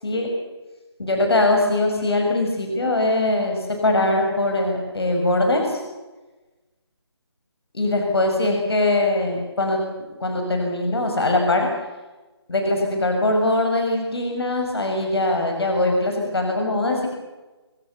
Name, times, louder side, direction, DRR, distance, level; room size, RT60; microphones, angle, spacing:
voice 1, 1.0-5.8 7.7-9.8 10.2-11.7 12.5-17.1, left 2 dB, 65° left, 2 dB, 6.7 m, -21 dB
28.0 x 20.0 x 7.1 m, 1.2 s
figure-of-eight pair, 175°, 14 cm